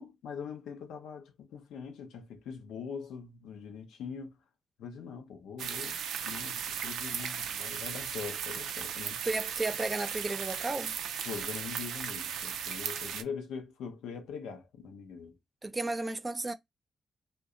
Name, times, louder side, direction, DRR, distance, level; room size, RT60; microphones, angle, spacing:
voice 1, 0.0-4.4 4.8-9.2 11.2-15.3, left 6 dB, 80° left, 0.7 m, -42 dB
sound 1, 5.6-13.2, right 8 dB, 80° right, 0.3 m, -36 dB
voice 2, 9.2-10.9 15.6-16.5, right 2 dB, 30° right, 0.6 m, -33 dB
2.7 x 2.2 x 3.7 m
supercardioid pair, 45°, 0 cm